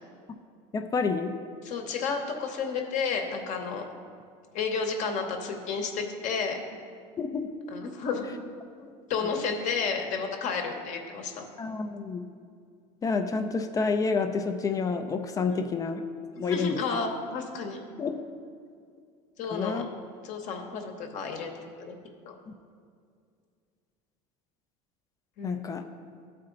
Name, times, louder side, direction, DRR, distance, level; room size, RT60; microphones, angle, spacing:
voice 1, 0.7-1.4 7.2-7.5 11.6-12.3 13.0-16.0 16.4-16.8 18.0-18.2 19.5-19.8 22.5-22.6 25.4-25.9, left 4 dB, 20° left, 7 dB, 0.4 m, -29 dB
voice 2, 1.6-3.9 4.5-6.6 7.7-8.3 8.8-11.5 15.5-15.6 16.5-17.8 19.4-19.8 20.2-22.0 22.3-22.4 25.4-25.8, left 5 dB, 50° left, 3 dB, 0.9 m, -32 dB
12.5 x 4.3 x 3.8 m, 2.2 s
supercardioid pair, 130°, 16 cm